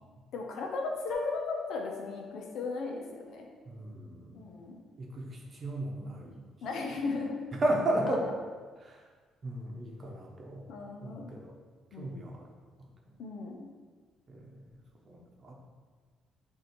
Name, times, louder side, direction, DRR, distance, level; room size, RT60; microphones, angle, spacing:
voice 1, 0.3-3.5 4.3-4.8 6.6-7.4 10.7-11.3 11.9-12.3 13.2-13.7, left 3 dB, 70° left, 0 dB, 1.0 m, -36 dB
sound 1, 1.1-3.0, left 5 dB, 50° left, 1.2 m, -40 dB
voice 2, 3.7-4.4 5.0-6.5 7.5-8.2 8.8-9.0 9.4-10.7 11.0-11.5 12.0-12.5 12.8-12.9 14.3-14.7 15.1-15.5, right 1 dB, 35° right, 0 dB, 1.0 m, -34 dB
8.1 x 2.8 x 4.6 m, 1.5 s
cardioid pair, 135°, 0 cm